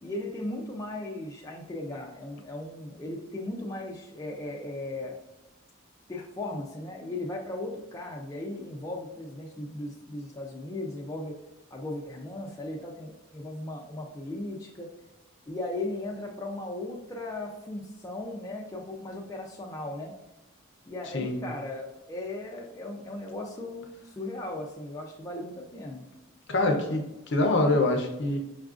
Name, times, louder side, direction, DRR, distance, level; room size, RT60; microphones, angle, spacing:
voice 1, 0.0-5.2 6.1-11.4 11.7-14.9 15.5-20.1 20.9-26.0, left 2 dB, 15° left, -2 dB, 0.3 m, -37 dB
voice 2, 26.5-28.4, left 2 dB, 55° left, 3 dB, 0.6 m, -25 dB
5.5 x 2.4 x 2.4 m, 0.96 s
head